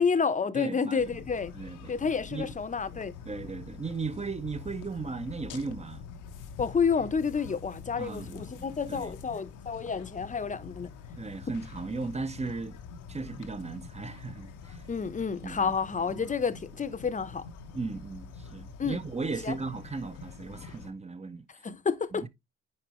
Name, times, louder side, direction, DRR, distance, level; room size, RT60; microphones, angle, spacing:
voice 1, 0.0-1.5 1.9-3.1 6.6-10.9 14.9-17.4 18.8-19.0 19.4-19.6 21.6-22.3, left 5 dB, 25° left, 0.9 m, -29 dB
voice 2, 0.5-1.0 1.5-1.9 2.3-2.5 3.3-6.0 8.0-9.1 11.2-12.8 13.1-14.8 15.4-15.7 16.2-16.3 17.7-21.5 22.1-22.3, right 4 dB, 20° right, 0.8 m, -36 dB
sound 1, 1.0-20.9, left 5 dB, 80° left, 1.1 m, -46 dB
9.8 x 4.6 x 3.0 m
cardioid pair, 90°, 30 cm